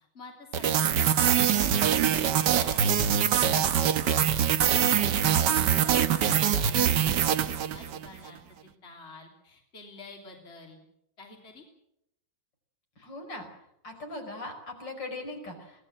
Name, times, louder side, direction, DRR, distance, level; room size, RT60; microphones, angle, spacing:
voice 1, 0.1-8.4 8.8-10.8 11.2-11.6, left 3 dB, 30° left, 1 dB, 3.5 m, -48 dB
sound 1, 0.5-8.1, right 9 dB, 65° right, 1.6 m, -24 dB
voice 2, 13.0-13.5 13.8-15.9, left 2 dB, 65° left, 3 dB, 5.5 m, -39 dB
24.5 x 18.0 x 7.7 m, 0.79 s
omnidirectional pair, 2.1 m